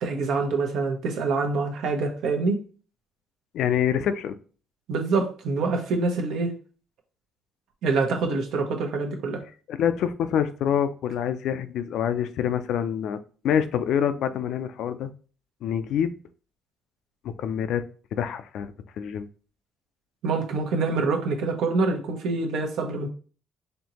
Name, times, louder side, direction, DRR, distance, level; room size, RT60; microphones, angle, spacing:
voice 1, 0.0-2.6 4.9-6.5 7.8-9.4 20.2-23.1, right 3 dB, 75° right, 3 dB, 0.9 m, -25 dB
voice 2, 3.5-4.4 9.7-13.2 13.4-15.1 15.6-16.2 17.2-17.8 18.1-19.3, left 9 dB, 70° left, 11 dB, 0.4 m, -26 dB
4.4 x 2.8 x 2.9 m, 0.39 s
cardioid pair, 100°, 0 cm